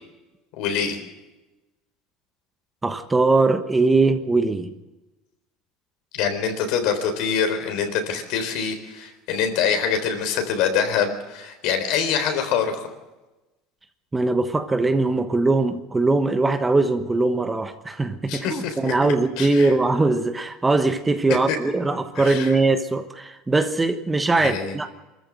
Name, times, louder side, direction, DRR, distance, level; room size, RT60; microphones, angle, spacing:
voice 1, 0.6-1.0 6.1-12.9 18.3-19.7 21.5-21.6 22.2-22.5 24.4-24.7, left 7 dB, 65° left, 3.9 m, -25 dB
voice 2, 2.8-4.7 14.1-24.9, right 3 dB, 15° right, 1.2 m, -21 dB
24.0 x 14.0 x 7.8 m
supercardioid pair, 125°, 0 cm